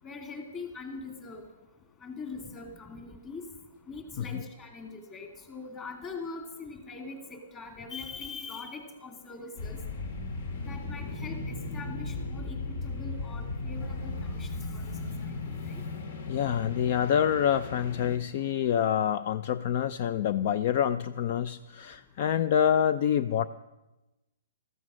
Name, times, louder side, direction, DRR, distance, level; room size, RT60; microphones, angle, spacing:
voice 1, 0.0-1.5 2.0-3.4 3.9-9.8 10.7-14.9 15.2-15.3 15.6-15.8, left 4 dB, 20° left, 3 dB, 2.6 m, -42 dB
sound 1, 9.6-18.2, left 3 dB, 60° left, 2.3 m, -36 dB
voice 2, 16.3-23.5, left 9 dB, 45° left, 14 dB, 0.4 m, -27 dB
14.5 x 14.0 x 6.3 m, 1.0 s
hypercardioid pair, 155°, 0 cm